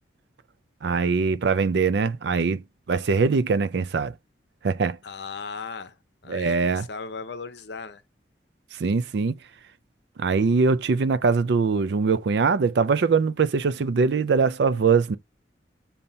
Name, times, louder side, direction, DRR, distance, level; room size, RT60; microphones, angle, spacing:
voice 1, 0.8-2.6 2.9-4.1 4.6-5.0 6.3-6.9 8.8-9.4 10.2-15.2, right 4 dB, 60° right, 0.4 m, -22 dB
voice 2, 5.0-6.0 6.2-8.0, left 4 dB, 60° left, 0.7 m, -37 dB
7.0 x 2.8 x 5.3 m
head